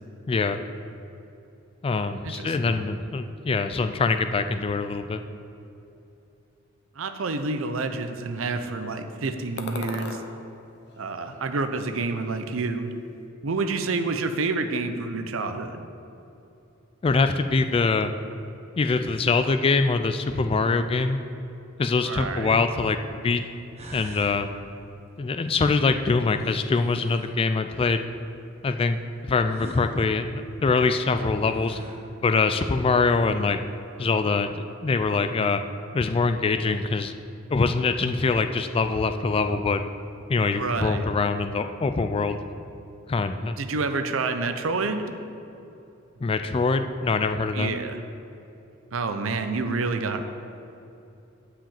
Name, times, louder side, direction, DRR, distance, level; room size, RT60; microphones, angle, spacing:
voice 1, 0.3-0.6 1.8-5.2 17.0-18.1 18.8-21.2 21.8-23.0 23.2-23.4 23.9-24.5 25.2-28.0 28.6-29.0 29.2-31.8 32.2-33.6 34.0-34.5 34.8-35.6 35.9-37.1 37.5-39.8 40.3-42.4 43.1-43.5 46.2-47.7, left 4 dB, 25° left, 9 dB, 0.3 m, -24 dB
voice 2, 2.2-2.8 7.0-10.2 11.0-12.9 13.4-15.8 22.0-22.6 40.5-41.0 43.6-45.1 47.5-48.0 48.9-50.2, right 3 dB, 70° right, 8 dB, 0.6 m, -28 dB
sound 1, 9.6-10.3 10.8-11.8 12.0-12.9, left 3 dB, 55° left, 0.8 m, -39 dB
sound 2, 23.3-23.4 23.7-24.4 25.4-27.4 29.4-29.9 31.1-31.2 31.5-32.1, equal, 30° right, 1.1 m, -44 dB
8.8 x 4.9 x 7.3 m, 2.9 s
head